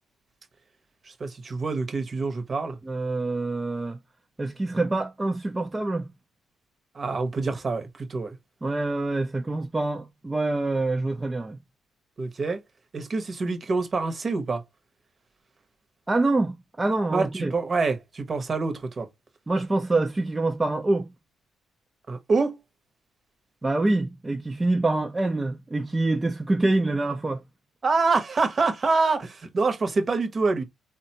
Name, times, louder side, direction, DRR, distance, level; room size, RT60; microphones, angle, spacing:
voice 1, 1.1-2.8 6.9-8.4 12.2-12.6 12.9-14.6 17.1-19.1 22.1-22.6 27.8-30.6, right 4 dB, 40° right, 0.8 m, -26 dB
voice 2, 2.8-4.0 4.4-6.1 8.6-11.6 16.1-17.5 19.5-21.1 23.6-27.4, right 2 dB, 20° right, 0.4 m, -26 dB
3.6 x 2.2 x 2.8 m
cardioid pair, 90°, 0 cm